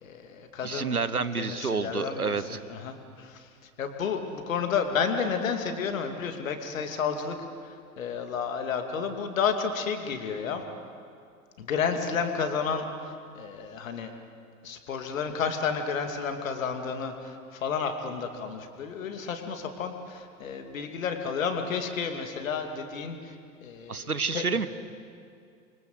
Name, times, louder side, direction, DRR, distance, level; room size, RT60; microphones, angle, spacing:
voice 1, 0.0-0.9 1.4-3.5 3.8-7.4 7.6-10.6 11.6-14.1 14.6-24.4, left 6 dB, 65° left, 6 dB, 2.8 m, -31 dB
voice 2, 0.6-2.6 23.9-24.7, right 5 dB, 85° right, 15 dB, 1.1 m, -29 dB
28.0 x 24.0 x 8.1 m, 2.4 s
figure-of-eight pair, 85°, 43 cm